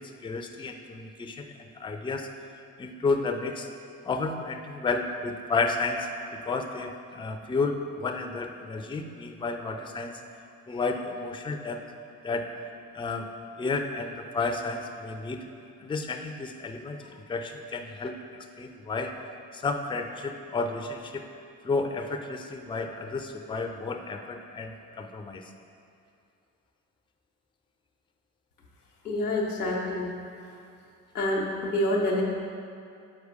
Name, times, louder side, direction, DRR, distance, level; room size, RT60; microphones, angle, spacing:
voice 1, 0.0-2.3 2.8-3.7 4.0-10.2 10.7-11.9 12.2-12.5 12.9-13.3 13.6-15.5 15.8-19.1 19.5-21.2 21.6-25.5, left 3 dB, 10° left, 6 dB, 0.5 m, -32 dB
voice 2, 29.0-30.1 31.1-32.2, left 1 dB, 90° left, -3 dB, 0.7 m, -27 dB
6.5 x 4.7 x 4.8 m, 2.4 s
figure-of-eight pair, 40°, 44 cm